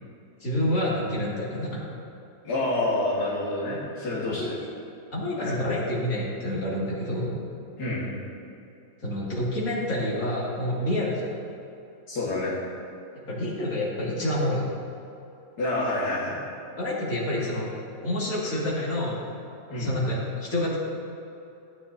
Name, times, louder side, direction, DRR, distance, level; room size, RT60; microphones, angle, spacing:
voice 1, 0.4-1.9 4.3-4.7 5.1-7.4 9.0-11.4 13.3-14.6 16.8-17.7 18.0-19.2 19.8-20.8, left 1 dB, 60° left, -6 dB, 2.8 m, -28 dB
voice 2, 2.4-4.6 5.4-5.6 7.8-8.1 12.1-12.6 15.6-16.4 19.7-19.9, left 2 dB, 75° left, -9 dB, 2.4 m, -28 dB
16.5 x 9.4 x 2.8 m, 2.8 s
omnidirectional pair, 1.7 m